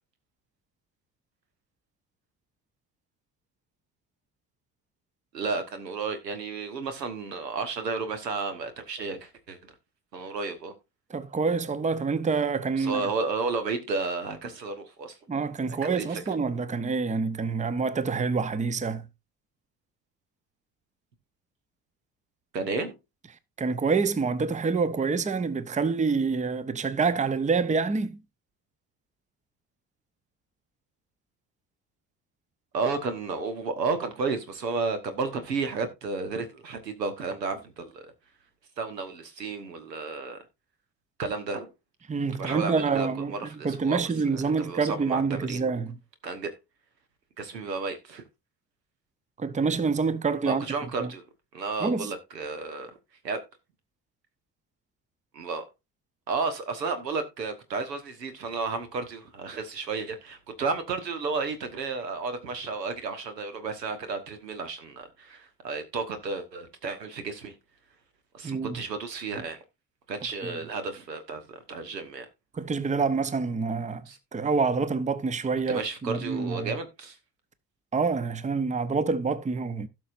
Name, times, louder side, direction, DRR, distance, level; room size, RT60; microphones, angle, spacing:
voice 1, 5.3-9.7 10.1-10.7 12.8-15.2 15.8-16.2 22.5-23.0 32.7-38.1 38.8-40.4 41.2-41.7 42.4-44.0 44.3-45.6 46.2-46.5 47.4-48.2 50.4-51.2 51.5-52.9 53.2-53.4 55.3-55.6 56.3-67.6 68.3-69.6 70.1-72.3 74.1-74.2 75.7-77.2, right 4 dB, 85° right, 1.4 m, -32 dB
voice 2, 11.1-13.0 15.3-19.1 23.6-28.2 42.1-43.3 43.6-45.9 49.4-50.7 51.0-51.1 51.8-52.1 68.4-68.8 72.5-74.0 74.3-76.7 77.9-79.9, right 4 dB, 15° right, 0.8 m, -27 dB
16.5 x 6.0 x 2.6 m
figure-of-eight pair, 50°, 48 cm